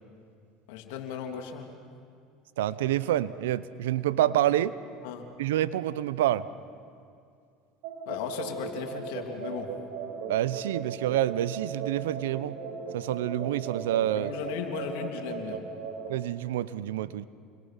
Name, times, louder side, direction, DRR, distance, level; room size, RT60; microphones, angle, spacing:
voice 1, 0.7-1.7 5.0-5.2 8.1-9.7 14.1-15.6, left 7 dB, 75° left, 4 dB, 2.7 m, -36 dB
voice 2, 2.6-4.7 5.4-6.5 10.3-12.6 12.9-14.3 16.1-17.3, right 13 dB, 85° right, 17 dB, 0.7 m, -27 dB
sound 1, 7.8-16.1, right 5 dB, 70° right, 4.9 m, -37 dB
29.0 x 22.0 x 5.8 m, 2.3 s
supercardioid pair, 95°, 0 cm